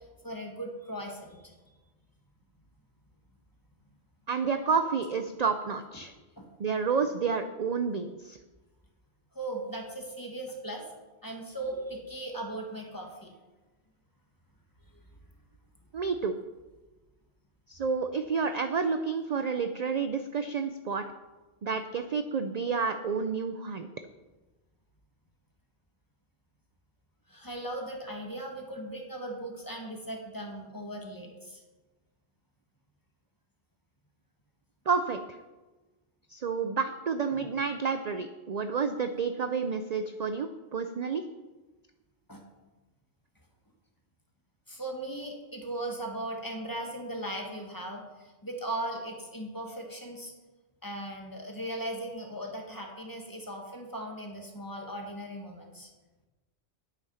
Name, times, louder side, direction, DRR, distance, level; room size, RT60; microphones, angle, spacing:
voice 1, 0.2-1.8 6.4-6.5 9.3-10.9 11.2-13.3 14.9-15.0 27.3-31.6 37.3-37.5 42.3-42.4 44.7-50.3 50.8-55.9, right 1 dB, 15° left, 1 dB, 1.8 m, -38 dB
voice 2, 4.3-6.1 6.6-8.4 15.9-16.4 17.7-21.0 21.6-23.9 34.9-35.2 36.3-41.3, right 5 dB, 50° right, 8 dB, 0.5 m, -30 dB
9.9 x 8.6 x 5.6 m, 1.2 s
omnidirectional pair, 1.2 m